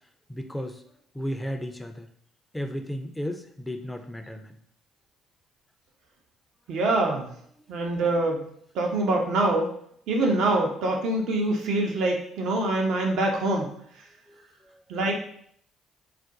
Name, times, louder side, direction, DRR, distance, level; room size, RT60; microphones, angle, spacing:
voice 1, 0.3-0.8 1.1-2.1 2.5-4.6 7.8-7.9 14.3-14.8, equal, 10° left, 6 dB, 0.4 m, -34 dB
voice 2, 6.7-7.3 7.7-8.4 8.7-9.7 10.1-13.7 14.9-15.2, right 2 dB, 65° right, 1 dB, 0.6 m, -24 dB
2.5 x 2.2 x 3.8 m, 0.66 s
hypercardioid pair, 50°, 0 cm